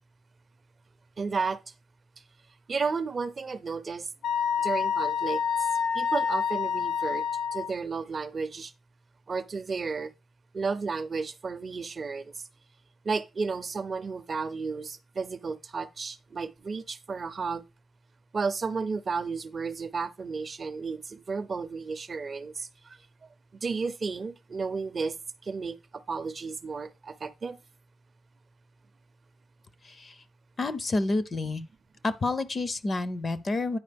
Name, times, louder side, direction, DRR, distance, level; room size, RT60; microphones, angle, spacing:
voice 1, 1.2-1.6 2.7-4.1 4.6-5.4 5.9-7.2 7.5-8.7 9.3-10.1 10.5-12.4 13.0-17.6 18.3-23.0 23.6-25.2 25.4-27.6, right 4 dB, 35° right, 0.5 m, -33 dB
Wind instrument woodwind instrument, 4.2-7.7, left 7 dB, 85° left, 0.5 m, -28 dB
voice 2, 30.6-31.6 32.0-33.8, left 2 dB, 30° left, 0.5 m, -29 dB
9.4 x 4.8 x 3.4 m
wide cardioid pair, 160°, 0 cm